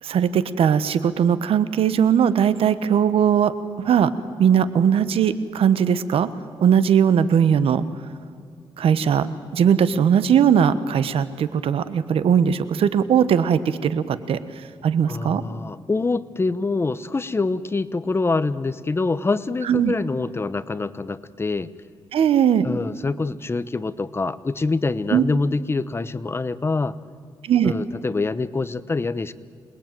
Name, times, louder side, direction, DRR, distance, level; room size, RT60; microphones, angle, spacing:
voice 1, 0.0-3.5 3.8-4.1 4.4-6.3 6.6-7.8 8.8-9.3 9.5-15.4 19.7-19.9 22.1-22.7 25.1-25.2 27.4-27.7, right 8 dB, 80° right, 14 dB, 1.3 m, -19 dB
voice 2, 15.1-21.7 22.6-26.9 27.6-29.3, left 3 dB, 25° left, 15 dB, 0.9 m, -25 dB
27.5 x 21.0 x 9.1 m, 2.3 s
cardioid pair, 105°, 10 cm